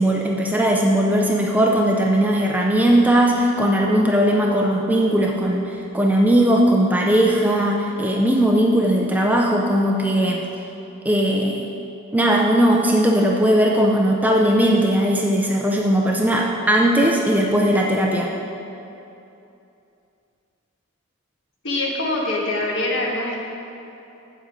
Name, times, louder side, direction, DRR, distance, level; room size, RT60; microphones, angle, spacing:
voice 1, 0.0-10.4 11.0-11.7 12.1-18.3, right 1 dB, 5° right, 0 dB, 0.5 m, -18 dB
voice 2, 21.6-23.5, left 2 dB, 55° left, -2 dB, 1.4 m, -24 dB
7.9 x 7.6 x 5.2 m, 2.8 s
head